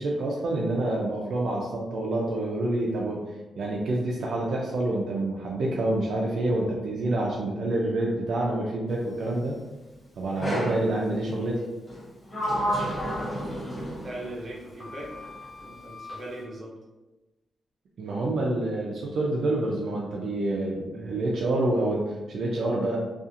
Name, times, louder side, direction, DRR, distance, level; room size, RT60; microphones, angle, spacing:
voice 1, 0.0-3.2 3.6-9.5 10.2-11.6 18.0-23.0, right 2 dB, 65° right, -3 dB, 0.4 m, -27 dB
Sliding door, 10.4-10.9 11.9-14.3 14.8-16.2, equal, 15° left, 0.6 m, -31 dB
voice 2, 14.0-15.1 15.6-16.7, right 1 dB, 30° right, -4 dB, 0.7 m, -39 dB
2.7 x 2.4 x 2.4 m, 1.1 s
wide cardioid pair, 160°, 0 cm